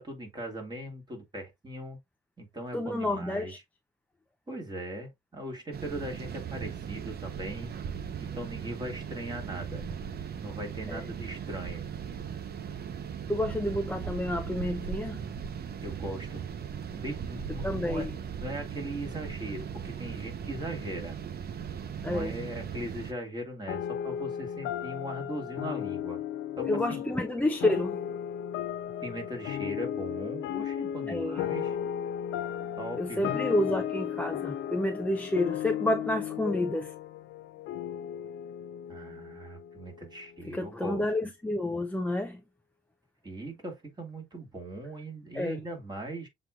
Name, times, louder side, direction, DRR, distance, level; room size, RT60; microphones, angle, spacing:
voice 1, 0.0-2.0 2.4-3.5 4.5-7.8 8.2-9.8 10.4-11.8 15.8-16.5 16.9-18.1 18.4-21.2 22.0-26.2 26.6-27.0 29.0-31.8 32.8-33.4 38.9-41.1 43.2-46.3, right 1 dB, 20° right, 2.3 m, -39 dB
voice 2, 2.7-3.6 10.9-11.0 13.3-15.2 17.6-18.1 22.0-22.3 26.7-28.0 31.1-31.4 33.0-36.9 40.5-42.4 45.3-45.6, left 1 dB, 5° left, 0.5 m, -29 dB
sound 1, 5.7-23.1, right 7 dB, 55° right, 0.8 m, -38 dB
sound 2, 23.7-40.5, left 10 dB, 85° left, 0.6 m, -35 dB
7.4 x 3.1 x 2.4 m
cardioid pair, 90°, 20 cm